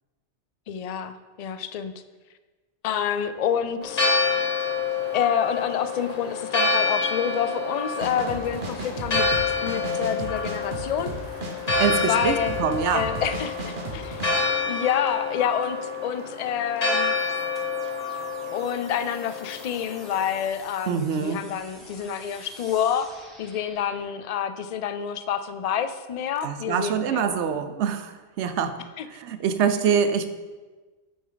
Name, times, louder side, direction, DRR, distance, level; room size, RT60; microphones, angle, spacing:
voice 1, 0.7-1.9 2.8-4.1 5.1-11.1 11.9-12.6 12.9-14.2 14.6-17.1 18.5-27.4 29.0-29.1, left 8 dB, 60° left, 11 dB, 0.4 m, -28 dB
Church bell, 3.8-20.5, left 4 dB, 35° left, 1.1 m, -28 dB
sound 1, 7.9-14.3, right 3 dB, 50° right, 1.0 m, -35 dB
voice 2, 11.8-13.1 20.9-21.4 26.4-28.8 29.1-30.3, right 7 dB, 80° right, 10 dB, 0.9 m, -25 dB
ray gun noise, 17.1-24.1, equal, ahead, 1.7 m, -49 dB
7.9 x 6.2 x 4.0 m, 1.3 s
omnidirectional pair, 1.2 m